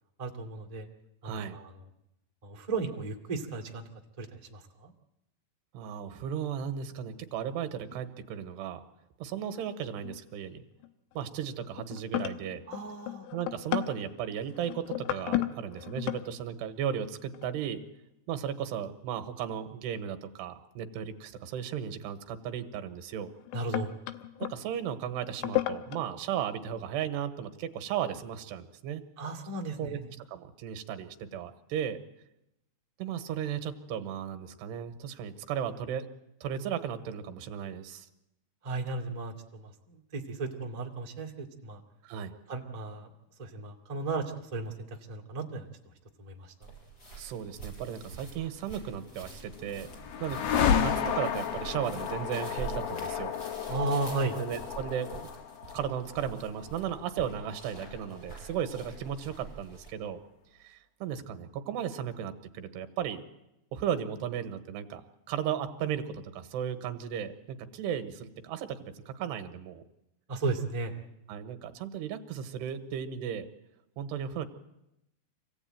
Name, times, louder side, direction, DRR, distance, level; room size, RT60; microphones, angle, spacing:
voice 1, 0.2-0.9 1.2-1.7 2.4-3.9 4.2-4.9 12.7-13.3 23.5-23.9 29.2-30.0 38.6-41.8 42.5-43.1 43.4-44.7 45.1-45.7 46.2-46.5 53.7-54.4 70.3-71.0, right 3 dB, 40° right, 0 dB, 0.5 m, -35 dB
voice 2, 1.2-1.6 5.7-8.8 9.2-10.6 11.1-12.6 13.3-17.8 18.3-23.3 24.4-29.0 29.8-30.0 30.3-32.0 33.0-36.1 36.4-38.1 42.0-42.3 47.2-49.9 50.2-53.3 54.4-55.3 55.7-60.2 60.6-63.2 63.7-65.0 65.3-69.8 71.3-73.5 74.0-74.5, right 9 dB, 75° right, 9 dB, 3.3 m, -35 dB
sound 1, 7.9-8.0 10.0-10.5 10.8-11.1 11.6-16.3 17.3-17.9 19.9-20.0 22.2-22.3 23.1-24.6 25.3-26.0, left 15 dB, 85° left, 3.2 m, -34 dB
sound 2, 46.6-59.9, right 4 dB, 20° left, 6.1 m, -47 dB
sound 3, 49.1-59.1, left 8 dB, 65° left, 2.8 m, -33 dB
25.5 x 16.5 x 9.1 m, 0.89 s
omnidirectional pair, 5.0 m